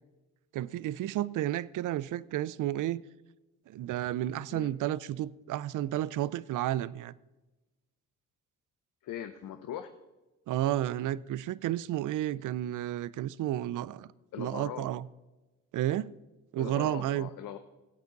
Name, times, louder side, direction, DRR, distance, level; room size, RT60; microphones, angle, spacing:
voice 1, 0.5-3.0 3.7-7.1 10.5-14.1 14.4-15.1 15.7-16.1 16.5-17.3, right 13 dB, 60° right, 0.5 m, -32 dB
voice 2, 9.0-9.9 14.3-14.9 16.6-17.6, left 10 dB, 65° left, 0.8 m, -40 dB
16.5 x 8.1 x 4.0 m
supercardioid pair, 70°, 35 cm